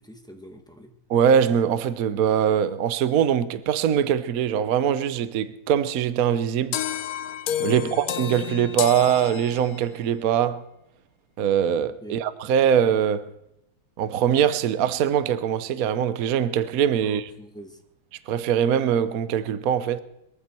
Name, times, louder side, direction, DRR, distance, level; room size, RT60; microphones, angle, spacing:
voice 1, 0.0-0.9 7.6-8.0 12.0-12.2 17.0-17.8, equal, ahead, 1.4 m, -43 dB
voice 2, 1.1-6.8 7.6-10.6 11.4-13.3 14.0-17.3 18.3-20.0, right 9 dB, 55° right, 1.1 m, -22 dB
sound 1, 6.7-10.0, left 11 dB, 65° left, 0.9 m, -30 dB
22.5 x 14.0 x 4.5 m
omnidirectional pair, 2.2 m